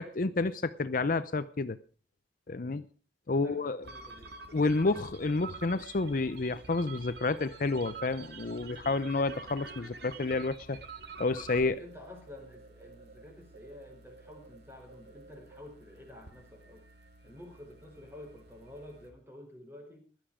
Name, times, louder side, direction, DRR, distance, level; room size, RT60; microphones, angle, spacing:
voice 1, 0.0-1.8 2.5-2.8 3.3-3.8 4.5-10.8 11.2-11.8, left 3 dB, 50° left, 0.6 m, -30 dB
voice 2, 3.3-4.3 11.8-16.9 17.2-20.1, left 1 dB, 15° right, 5.1 m, -50 dB
sound 1, 3.8-19.1, right 4 dB, 65° right, 2.1 m, -49 dB
16.0 x 12.0 x 5.0 m
head